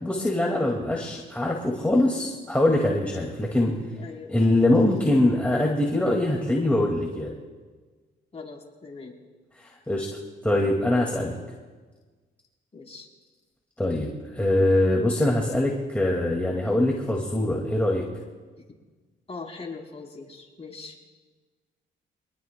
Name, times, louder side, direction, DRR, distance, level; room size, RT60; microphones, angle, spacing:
voice 1, 0.0-3.8 4.3-7.3 9.6-11.3 13.8-18.0, left 1 dB, 5° left, -2 dB, 2.0 m, -23 dB
voice 2, 4.0-4.4 8.3-9.1 12.7-13.1 19.3-21.0, left 4 dB, 30° left, 0 dB, 3.6 m, -40 dB
25.5 x 20.5 x 2.2 m, 1.4 s
cardioid pair, 90°, 20 cm